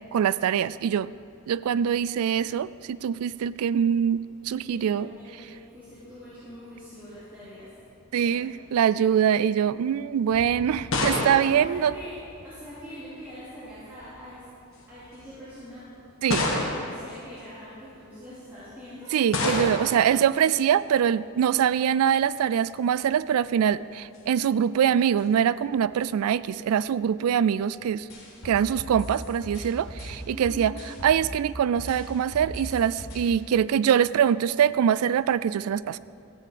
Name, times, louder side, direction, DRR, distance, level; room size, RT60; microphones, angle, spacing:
voice 1, 0.1-1.1 1.5-5.1 8.1-11.9 16.2-16.5 19.1-28.1 28.4-30.7 31.0-36.0, right 8 dB, 85° right, 18 dB, 0.3 m, -23 dB
voice 2, 4.6-7.7 8.1-8.4 11.6-12.2 12.4-14.4 14.9-15.8 16.5-19.1 30.3-30.7, equal, 10° right, -14 dB, 2.7 m, -44 dB
sound 1, 10.3-12.7 13.7-14.1 15.0-15.1 16.3-17.1 19.3-20.1, left 2 dB, 65° left, 1.4 m, -28 dB
sound 2, 28.1-31.4 31.8-33.2, equal, 85° left, 3.2 m, -39 dB
14.5 x 8.5 x 5.1 m, 2.5 s
head